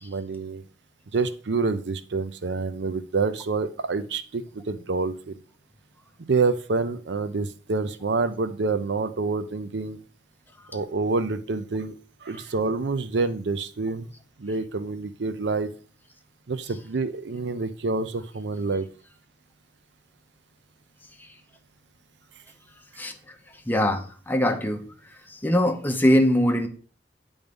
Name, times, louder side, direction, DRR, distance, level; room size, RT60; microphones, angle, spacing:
voice 1, 0.0-0.6 1.1-5.3 6.2-10.0 10.7-11.9 12.2-14.1 14.4-15.7 16.5-18.9, right 3 dB, 70° right, 0.6 m, -27 dB
voice 2, 23.0-23.4 23.7-24.9 25.3-26.7, equal, 10° left, 0.8 m, -23 dB
9.2 x 3.6 x 5.2 m
head